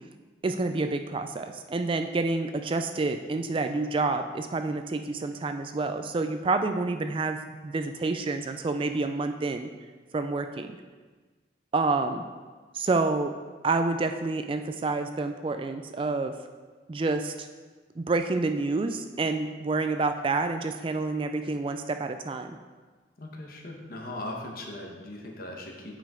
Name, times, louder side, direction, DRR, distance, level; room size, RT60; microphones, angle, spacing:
voice 1, 0.4-9.7 10.1-10.7 11.7-12.2 12.7-13.3 13.6-16.3 16.9-17.5 18.0-22.6, right 3 dB, 30° right, 7 dB, 0.3 m, -28 dB
voice 2, 23.2-26.0, left 1 dB, 55° left, 1 dB, 1.1 m, -39 dB
8.8 x 5.2 x 3.7 m, 1.4 s
head